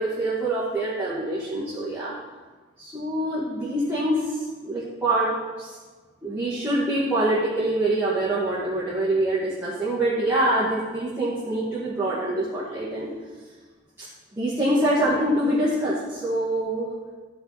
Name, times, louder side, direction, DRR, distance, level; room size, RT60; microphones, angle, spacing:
voice 1, 0.0-2.1 2.8-5.3 5.6-5.8 6.2-13.1 14.0-14.1 14.3-16.9, right 1 dB, 10° right, -11 dB, 2.0 m, -25 dB
14.0 x 5.9 x 4.2 m, 1.4 s
head